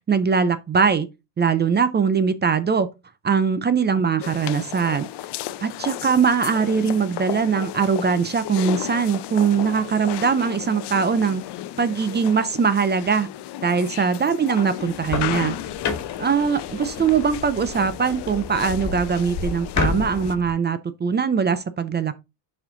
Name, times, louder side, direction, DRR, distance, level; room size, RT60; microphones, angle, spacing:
voice 1, 0.1-1.1 1.4-2.9 3.2-5.1 5.6-11.5 11.8-13.3 13.6-15.6 16.2-22.1, right 6 dB, 25° right, 0.4 m, -21 dB
sound 1, 4.2-20.4, left 13 dB, 70° left, 0.6 m, -34 dB
sound 2, 14.8-20.5, left 4 dB, 40° left, 1.8 m, -30 dB
7.1 x 4.3 x 3.8 m
cardioid pair, 150°, 42 cm